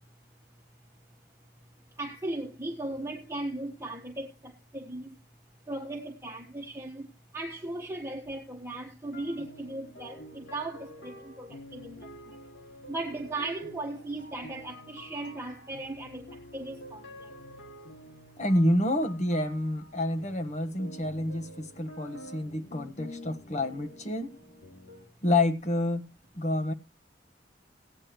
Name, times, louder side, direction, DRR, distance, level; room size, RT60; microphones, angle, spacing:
voice 1, 2.0-5.1 5.7-7.1 7.3-12.0 12.9-17.0, right 2 dB, 15° right, 1.4 m, -37 dB
sound 1, 9.1-25.1, equal, 85° left, 3.2 m, -48 dB
voice 2, 18.4-24.3 25.2-26.1 26.4-26.7, left 1 dB, 40° left, 1.4 m, -28 dB
17.0 x 9.7 x 3.2 m
head